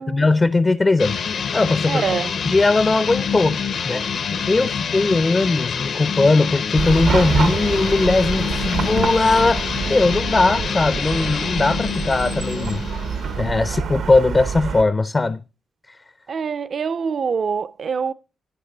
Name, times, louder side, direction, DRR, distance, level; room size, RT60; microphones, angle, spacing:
voice 1, 0.0-2.0 2.4-4.0 4.5-12.8 13.4-15.4, left 3 dB, 30° left, 0.4 m, -19 dB
sound 1, 1.0-13.5, left 6 dB, 70° left, 0.8 m, -26 dB
voice 2, 1.9-2.3 16.3-18.1, right 6 dB, 55° right, 0.4 m, -25 dB
Chatter / Car passing by / Traffic noise roadway noise, 6.8-14.8, right 6 dB, 75° right, 0.8 m, -26 dB
11.5 x 8.8 x 3.9 m
cardioid pair, 85°, 0 cm